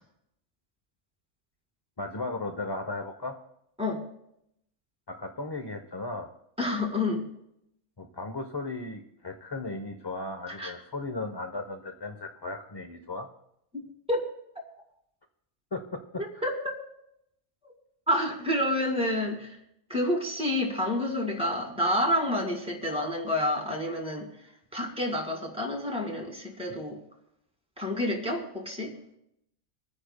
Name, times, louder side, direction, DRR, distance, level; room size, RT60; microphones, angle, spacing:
voice 1, 2.0-3.3 5.1-6.3 8.0-13.3 15.7-16.2, left 2 dB, 25° left, 4 dB, 0.7 m, -36 dB
voice 2, 6.6-7.3 10.5-10.7 13.7-13.8 14.1-14.2 16.2-16.7 17.6-17.7 18.1-19.6 19.9-27.0 27.8-28.9, left 1 dB, 5° right, 1 dB, 2.1 m, -29 dB
27.0 x 9.8 x 2.2 m, 0.78 s
omnidirectional pair, 1.3 m